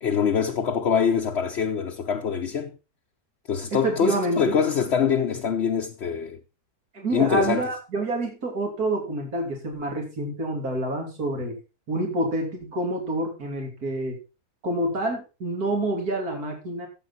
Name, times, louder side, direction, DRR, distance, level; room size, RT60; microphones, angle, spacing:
voice 1, 0.0-2.7 3.5-6.4 7.1-7.7, left 7 dB, 50° left, 1.1 m, -24 dB
voice 2, 3.7-4.5 6.9-11.6 11.9-14.2 14.6-16.9, right 2 dB, 70° right, 3.6 m, -27 dB
14.0 x 7.7 x 4.2 m
omnidirectional pair, 1.7 m